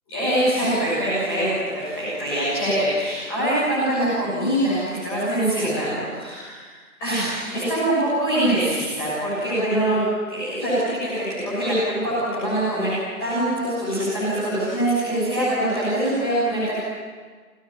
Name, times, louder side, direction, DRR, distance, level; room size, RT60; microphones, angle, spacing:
voice 1, 0.1-6.7 7.0-10.0 10.3-16.7, right 1 dB, 5° left, -13 dB, 6.8 m, -23 dB
27.5 x 19.5 x 9.6 m, 1.5 s
figure-of-eight pair, 170°, 44 cm